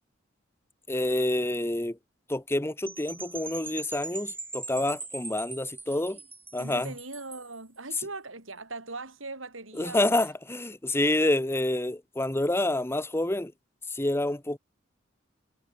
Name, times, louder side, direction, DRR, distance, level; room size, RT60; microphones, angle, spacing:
voice 1, 0.9-2.0 2.3-6.2 6.5-6.9 9.8-13.5 13.9-14.6, left 1 dB, 15° left, 1.1 m, -28 dB
Percussion / Wind chime, 2.9-7.5, right 3 dB, 10° right, 5.9 m, -41 dB
voice 2, 5.9-6.2 6.6-10.3, right 3 dB, 85° right, 6.5 m, -40 dB
head